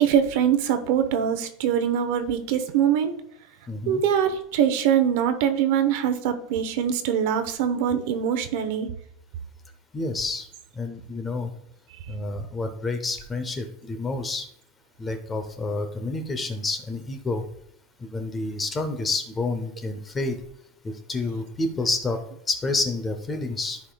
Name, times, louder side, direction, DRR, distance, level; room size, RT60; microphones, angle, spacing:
voice 1, 0.0-3.1 3.9-8.9, right 9 dB, 50° right, 9 dB, 0.9 m, -23 dB
voice 2, 3.7-4.0 9.9-10.5 10.8-11.5 12.1-14.5 15.0-17.4 18.0-20.4 20.8-23.8, left 3 dB, 15° left, 7 dB, 0.6 m, -29 dB
13.5 x 4.9 x 2.3 m, 0.71 s
supercardioid pair, 180°, 0 cm